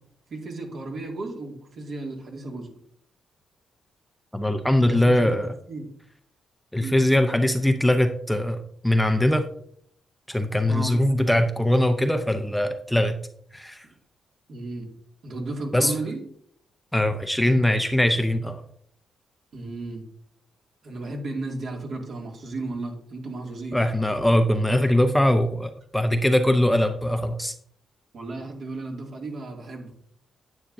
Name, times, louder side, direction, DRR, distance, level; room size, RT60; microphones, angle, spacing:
voice 1, 0.3-2.7 4.9-5.3 5.7-5.9 6.8-7.0 10.7-11.3 14.5-14.9 15.2-16.2 19.5-20.0 20.8-23.8 28.1-29.9, right 2 dB, 55° right, 1 dB, 2.2 m, -34 dB
voice 2, 4.3-5.5 6.7-9.5 10.3-13.2 13.5-13.8 15.7-15.9 16.9-18.6 23.7-27.5, left 1 dB, 5° left, 7 dB, 0.6 m, -21 dB
9.9 x 8.7 x 2.6 m, 0.64 s
cardioid pair, 105°, 0 cm